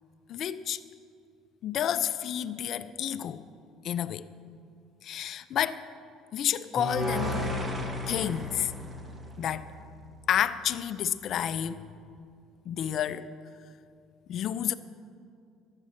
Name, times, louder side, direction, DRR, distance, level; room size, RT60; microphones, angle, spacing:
voice 1, 0.3-0.8 1.6-3.4 3.8-4.3 5.0-5.8 6.3-7.5 8.1-8.7 9.4-9.7 10.3-11.9 12.7-13.3 14.3-14.7, left 10 dB, 50° left, 12 dB, 0.4 m, -30 dB
sound 1, 6.8-10.0, left 1 dB, 20° right, 1.1 m, -33 dB
12.0 x 8.8 x 6.3 m, 2.4 s
cardioid pair, 140°, 0 cm